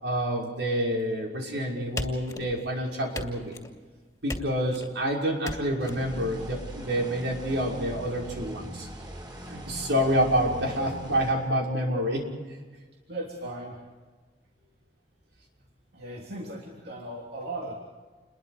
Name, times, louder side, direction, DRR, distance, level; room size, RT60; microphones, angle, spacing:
voice 1, 0.0-3.5 4.2-8.9 9.5-12.6, equal, 85° right, -1 dB, 6.0 m, -28 dB
sound 1, 2.0-2.7 3.1-3.8 4.3-4.9 5.4-6.0, left 1 dB, 20° left, 2.6 m, -37 dB
sound 2, 5.8-11.3, equal, 25° right, 7.4 m, -40 dB
voice 2, 13.1-13.8 14.6-14.7 15.9-17.7, right 1 dB, 65° right, -2 dB, 3.3 m, -37 dB
29.0 x 22.0 x 5.1 m, 1.4 s
head